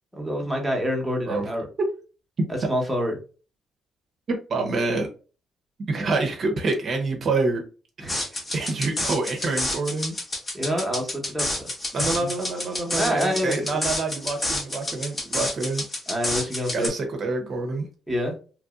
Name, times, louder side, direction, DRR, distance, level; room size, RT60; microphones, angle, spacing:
voice 1, 0.1-1.7 2.5-3.2 8.0-8.2 10.5-11.6 11.9-12.3 13.0-13.8 16.1-16.9 18.1-18.3, equal, 5° right, 0 dB, 1.1 m, -27 dB
voice 2, 4.5-5.1 5.9-7.6 8.3-10.1 11.9-15.8 16.7-17.9, right 3 dB, 50° right, 3 dB, 0.7 m, -26 dB
sound 1, 8.1-16.9, left 1 dB, 25° left, 1.1 m, -29 dB
3.0 x 2.6 x 2.4 m, 0.36 s
cardioid pair, 90°, 0 cm